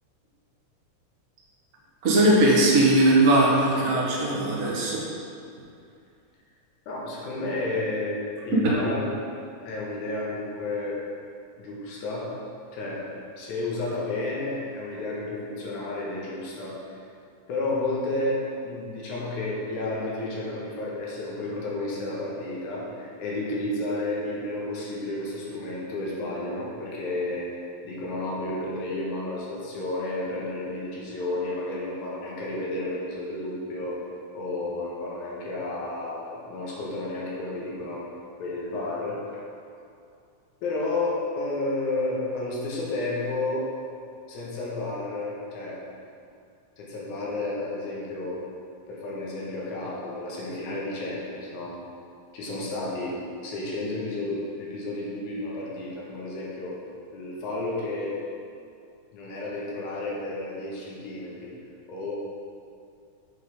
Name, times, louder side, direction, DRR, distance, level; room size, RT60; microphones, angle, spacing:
voice 1, 2.0-5.0 8.6-8.8, right 1 dB, 85° right, -5 dB, 0.7 m, -19 dB
voice 2, 6.9-9.1 9.6-11.0 11.6-12.3 12.7-13.0 13.4-17.0 17.5-27.5 27.8-34.0 34.3-38.1 38.4-39.2 40.6-43.7 44.3-45.8 46.8-48.4 48.9-51.8 52.3-56.8 57.1-58.2 59.1-61.5 61.9-62.1, left 2 dB, 85° left, -5 dB, 2.6 m, -31 dB
6.9 x 4.7 x 4.0 m, 2.5 s
omnidirectional pair, 3.4 m